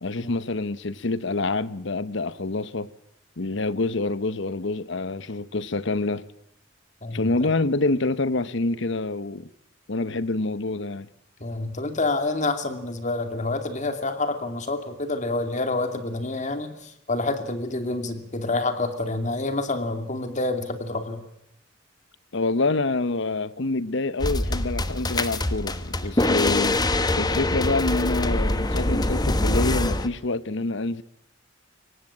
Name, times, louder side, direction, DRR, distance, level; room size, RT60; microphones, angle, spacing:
voice 1, 0.0-2.9 3.4-6.3 7.1-9.5 9.9-11.1 22.3-26.8 27.1-31.0, left 3 dB, 65° left, 1.0 m, -26 dB
voice 2, 7.0-7.5 11.4-21.2, left 2 dB, 40° left, 2.6 m, -28 dB
sound 1, 24.2-30.1, left 2 dB, 20° left, 1.2 m, -24 dB
24.0 x 18.5 x 8.8 m
head